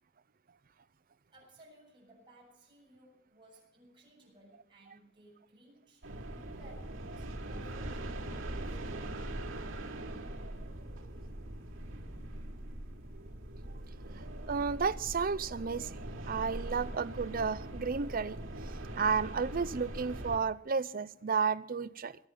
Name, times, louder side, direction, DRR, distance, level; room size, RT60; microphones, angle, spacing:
voice 1, 1.3-6.1 6.6-9.0, right 1 dB, 25° right, 7.9 m, -59 dB
sound 1, 6.0-20.4, right 1 dB, 65° right, 3.2 m, -42 dB
voice 2, 14.5-15.9 16.3-18.4 19.0-22.2, right 5 dB, 45° right, 0.6 m, -32 dB
23.0 x 9.3 x 5.6 m
head